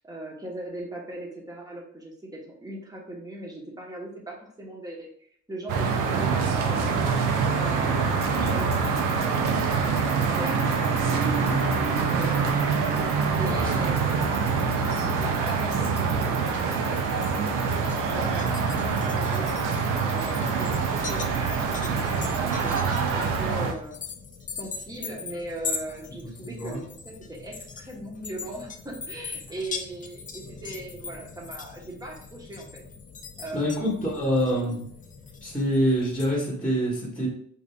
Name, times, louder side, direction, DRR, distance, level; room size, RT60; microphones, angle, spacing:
voice 1, 0.0-7.0 7.5-10.9 11.2-12.4 13.4-14.7 14.9-17.6 18.1-19.6 20.0-24.0 24.5-32.8 33.4-34.4, right 1 dB, 10° right, -1 dB, 1.0 m, -39 dB
sound 1, 5.7-23.7, right 5 dB, 85° right, 0.6 m, -25 dB
sound 2, 8.1-23.4, right 2 dB, 35° right, 1.3 m, -46 dB
sound 3, 17.8-36.4, left 5 dB, 25° left, 0.4 m, -40 dB
voice 2, 26.2-26.8 33.5-34.8 35.4-37.3, equal, 5° left, -3 dB, 1.3 m, -26 dB
4.8 x 2.6 x 2.3 m, 0.63 s
cardioid pair, 90°, 30 cm